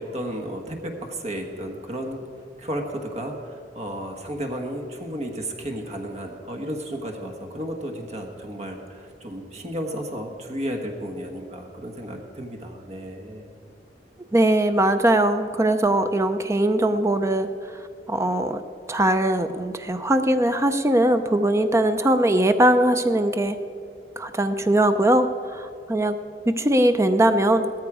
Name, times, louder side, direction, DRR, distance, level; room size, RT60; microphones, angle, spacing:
voice 1, 0.0-2.3 2.6-13.5, equal, 40° right, 3 dB, 1.3 m, -33 dB
voice 2, 14.3-17.5 18.1-18.6 18.9-23.6 24.2-26.2 26.5-27.7, right 1 dB, 15° right, 9 dB, 0.6 m, -20 dB
17.0 x 14.0 x 4.8 m, 2.5 s
head